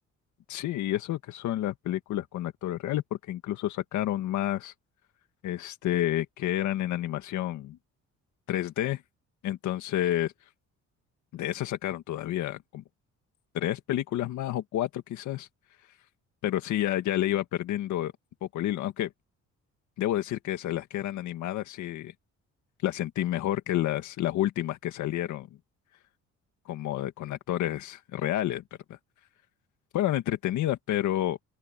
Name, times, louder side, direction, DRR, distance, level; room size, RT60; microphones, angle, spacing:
voice 1, 0.5-4.7 5.4-7.8 8.5-9.0 9.4-10.3 11.3-12.8 13.5-15.5 16.4-18.1 18.5-19.1 20.0-22.1 22.8-25.5 26.7-28.6 28.9-29.0 29.9-31.4, left 13 dB, 80° left, 1.9 m, -29 dB
open air
cardioid pair, 155°, 29 cm